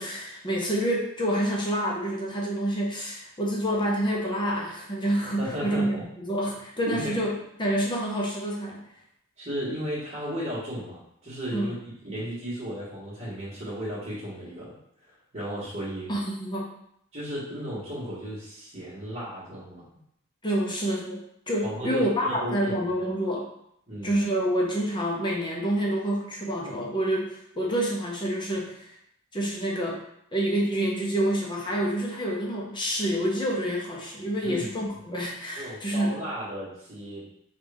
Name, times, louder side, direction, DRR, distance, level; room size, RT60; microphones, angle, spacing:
voice 1, 0.0-7.3 7.6-8.8 11.5-11.8 16.1-16.7 20.4-21.2 21.5-23.5 24.0-28.9 29.3-30.0 30.3-36.2, right 1 dB, 20° left, -2 dB, 0.7 m, -28 dB
voice 2, 5.4-6.1 6.9-7.2 9.4-11.8 12.0-14.7 15.0-16.1 17.1-19.9 21.6-22.7 23.9-24.1 34.4-34.7 35.6-37.2, equal, 30° right, -13 dB, 1.5 m, -34 dB
5.3 x 2.5 x 3.4 m, 0.74 s
head